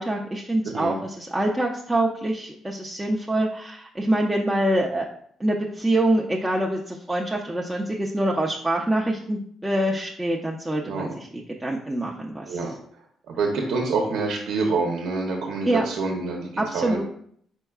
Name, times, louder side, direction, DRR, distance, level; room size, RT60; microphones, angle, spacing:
voice 1, 0.0-5.1 5.4-11.3 11.6-12.6 15.7-15.8 16.6-17.0, right 1 dB, 10° right, -3 dB, 0.5 m, -25 dB
voice 2, 0.6-1.0 10.8-11.1 12.5-12.7 13.3-17.0, right 3 dB, 80° right, 1 dB, 0.8 m, -27 dB
4.5 x 4.5 x 2.4 m, 0.63 s
cardioid pair, 90°, 0 cm